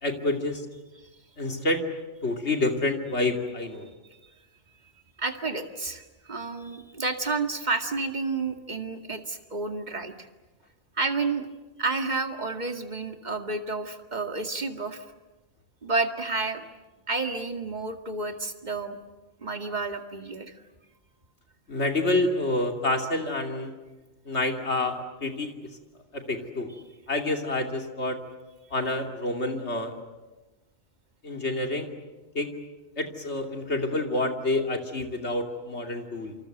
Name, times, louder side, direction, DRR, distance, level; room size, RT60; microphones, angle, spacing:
voice 1, 0.0-0.7 1.4-1.8 2.2-3.9 21.7-23.7 24.2-25.5 26.1-26.7 27.1-28.2 28.7-29.9 31.2-31.9 32.3-32.5 33.0-36.4, left 2 dB, 70° left, 4 dB, 3.2 m, -28 dB
voice 2, 5.2-10.3 11.0-11.5 11.8-15.0 15.8-16.6 17.1-19.0 19.4-20.5, right 3 dB, 40° right, 5 dB, 2.2 m, -30 dB
28.0 x 26.0 x 8.0 m, 1.2 s
omnidirectional pair, 1.2 m